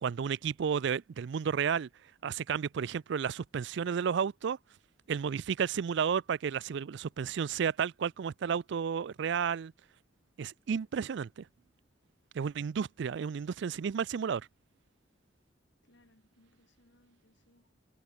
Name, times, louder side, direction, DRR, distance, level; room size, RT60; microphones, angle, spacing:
voice 1, 0.0-1.9 2.2-4.6 5.1-9.7 10.4-11.4 12.3-14.5, right 7 dB, 65° right, 0.4 m, -32 dB
voice 2, 15.8-17.7, left 1 dB, 70° left, 5.3 m, -67 dB
head